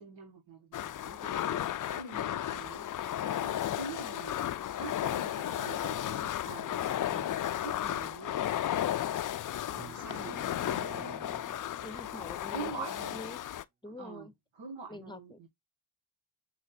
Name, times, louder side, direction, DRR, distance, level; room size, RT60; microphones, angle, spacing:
voice 1, 0.0-8.4 9.7-11.4 12.5-13.2 14.0-14.3 14.6-15.5, right 5 dB, 80° right, 1.7 m, -46 dB
sound 1, 0.7-13.6, left 11 dB, 45° left, 0.4 m, -34 dB
sound 2, 9.7-13.2, right 5 dB, 25° right, 0.3 m, -52 dB
voice 2, 11.8-13.4 13.8-14.3 14.9-15.4, left 1 dB, 10° left, 0.7 m, -46 dB
6.3 x 2.9 x 2.7 m
cardioid pair, 50°, 45 cm